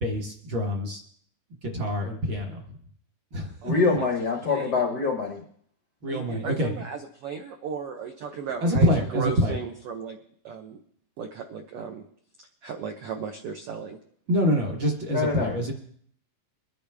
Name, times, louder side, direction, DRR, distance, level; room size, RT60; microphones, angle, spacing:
voice 1, 0.0-1.0 1.6-2.6 3.3-4.0 6.0-6.8 8.6-9.5 14.3-15.7, equal, 50° right, 1 dB, 1.6 m, -26 dB
voice 2, 3.6-5.4 15.1-15.5, left 4 dB, 85° left, 2 dB, 0.9 m, -25 dB
voice 3, 6.1-10.2 10.4-10.8 11.2-12.0 12.4-14.0, right 6 dB, 80° right, 4 dB, 1.3 m, -36 dB
23.0 x 10.5 x 3.5 m, 0.62 s
omnidirectional pair, 3.9 m